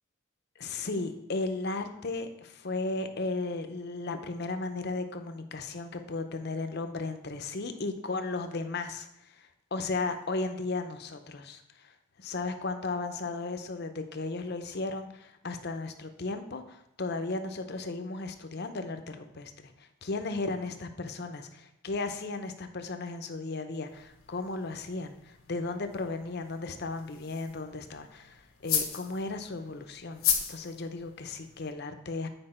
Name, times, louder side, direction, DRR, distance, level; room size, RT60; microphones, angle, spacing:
voice 1, 0.6-32.3, left 3 dB, 50° left, 7 dB, 0.7 m, -35 dB
sound 1, 23.9-31.7, left 8 dB, 90° left, 1.2 m, -36 dB
8.8 x 4.8 x 4.3 m, 0.81 s
head